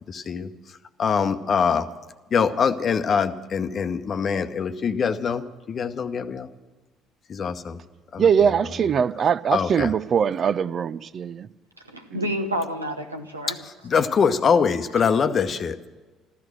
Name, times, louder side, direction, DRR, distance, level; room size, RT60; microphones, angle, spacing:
voice 1, 0.1-0.5 1.0-1.9 2.3-6.5 7.3-7.8 8.1-8.3 9.5-9.9 13.5-15.9, left 6 dB, 40° left, 10 dB, 0.9 m, -23 dB
voice 2, 8.2-11.5 12.1-12.3, right 7 dB, 45° right, 17 dB, 0.5 m, -22 dB
voice 3, 11.9-13.6, equal, 85° right, 5 dB, 1.0 m, -29 dB
14.5 x 13.5 x 6.4 m, 1.3 s
figure-of-eight pair, 50°, 0 cm